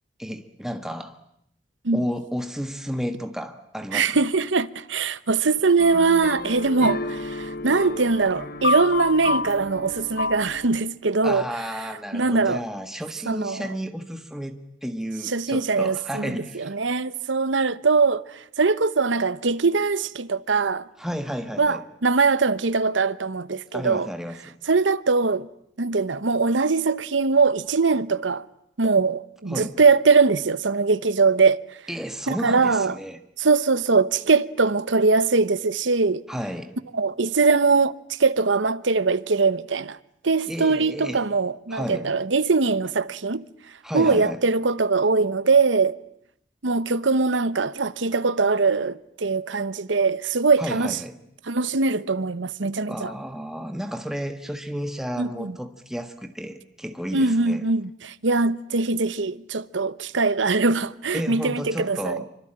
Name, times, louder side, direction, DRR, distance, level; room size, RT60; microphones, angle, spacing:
voice 1, 0.2-1.2 1.9-4.1 11.2-16.7 21.0-21.8 23.7-24.6 29.5-29.8 31.9-33.2 36.3-36.7 40.5-41.2 41.7-42.1 43.8-44.4 50.6-51.1 52.9-57.7 61.1-62.3, equal, 5° right, 1.5 m, -32 dB
voice 2, 3.9-11.4 12.1-12.6 13.3-13.7 15.3-20.9 21.6-24.1 24.7-25.5 25.8-28.4 28.8-31.6 32.3-33.0 33.4-36.2 36.9-40.0 40.2-43.4 43.9-46.0 46.6-51.0 51.5-53.1 55.2-55.6 57.1-62.2, right 4 dB, 85° right, 1.0 m, -22 dB
sound 1, 5.8-10.8, left 3 dB, 55° left, 1.0 m, -29 dB
25.5 x 25.0 x 8.9 m
head